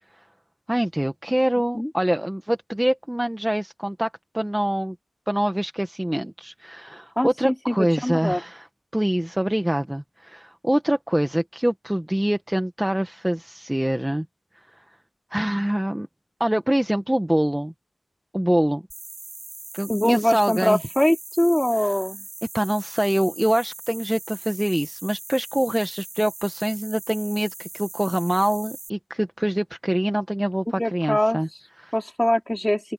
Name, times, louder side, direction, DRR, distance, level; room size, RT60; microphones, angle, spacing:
voice 1, 0.7-4.9 5.3-8.7 8.9-14.2 14.5-14.6 15.3-16.1 16.4-17.7 18.3-18.8 19.7-20.8 21.8-21.9 22.5-31.5 31.8-31.9, right 1 dB, 10° right, 1.4 m, -25 dB
voice 2, 7.2-8.4 19.9-22.3 30.8-31.4 31.9-32.8, left 1 dB, 10° left, 4.1 m, -23 dB
sound 1, 18.9-28.9, right 2 dB, 40° right, 6.7 m, -40 dB
open air
cardioid pair, 50°, 0 cm